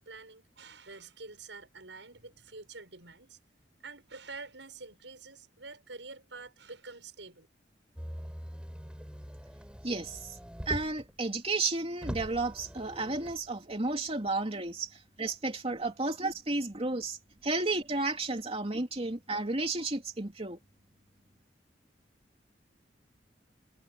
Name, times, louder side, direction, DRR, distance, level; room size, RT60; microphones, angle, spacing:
voice 1, 0.0-3.4 3.8-7.5, right 3 dB, 90° right, 7.0 m, -47 dB
Motor vehicle (road), 8.0-11.1 11.6-11.7 12.0-13.4 14.3-14.4, equal, 5° right, 4.9 m, -42 dB
voice 2, 9.8-10.4 10.7-17.2 17.4-20.6, right 3 dB, 35° right, 3.0 m, -32 dB
head